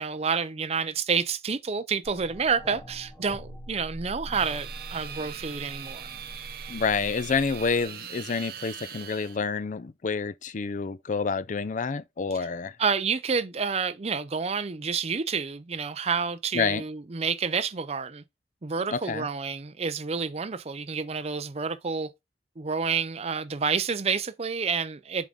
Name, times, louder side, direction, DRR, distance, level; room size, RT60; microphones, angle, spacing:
voice 1, 0.0-6.1 12.8-18.2 18.6-22.1 22.6-25.3, right 5 dB, 35° right, 0.6 m, -29 dB
sound 1, 2.0-7.8, equal, 5° left, 1.6 m, -43 dB
sound 2, 4.3-9.4, right 9 dB, 60° right, 0.9 m, -41 dB
voice 2, 6.7-12.7 16.5-16.8 18.9-19.3, left 5 dB, 45° left, 0.4 m, -28 dB
7.3 x 3.7 x 3.6 m
head